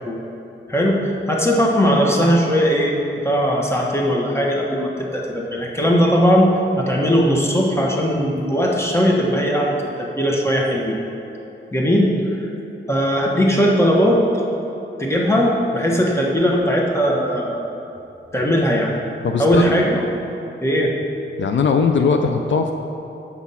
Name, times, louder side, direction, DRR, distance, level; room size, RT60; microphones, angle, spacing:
voice 1, 0.7-2.9 3.2-11.0 11.7-12.1 12.4-12.5 12.9-14.2 15.0-17.6 18.3-18.9 19.4-20.0 20.6-20.9, equal, 15° left, -2 dB, 1.2 m, -18 dB
voice 2, 19.2-19.8 21.4-22.7, left 5 dB, 70° left, 5 dB, 0.4 m, -19 dB
7.2 x 6.1 x 5.6 m, 2.9 s
wide cardioid pair, 90°, 20 cm